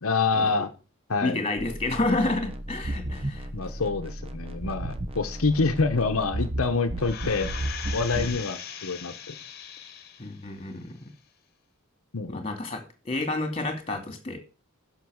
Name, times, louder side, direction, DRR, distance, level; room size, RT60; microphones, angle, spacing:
voice 1, 0.0-0.7 1.1-1.4 3.5-7.5 7.9-9.3 12.1-12.4, left 4 dB, 75° left, 5 dB, 0.9 m, -26 dB
voice 2, 1.2-3.5 8.2-8.3 10.2-11.0 12.3-14.4, left 2 dB, 25° left, 6 dB, 2.3 m, -29 dB
sound 1, 1.6-8.4, right 1 dB, 25° right, 0.9 m, -34 dB
sound 2, 7.0-10.4 10.9-11.0, left 8 dB, 45° left, 1.3 m, -39 dB
10.5 x 6.2 x 6.4 m, 0.35 s
head